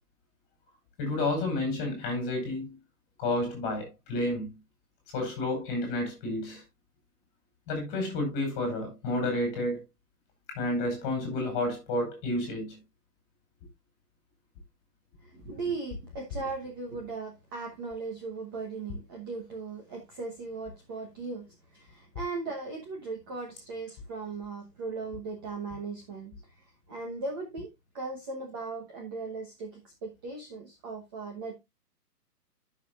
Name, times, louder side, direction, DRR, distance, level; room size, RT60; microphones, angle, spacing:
voice 1, 1.0-2.7 3.2-4.5 5.1-6.6 7.7-9.8 10.5-12.8, left 1 dB, 20° left, 5.1 m, -30 dB
voice 2, 15.2-27.7 27.9-31.5, right 3 dB, 15° right, 1.1 m, -38 dB
13.0 x 6.7 x 2.4 m
hypercardioid pair, 170°, 48 cm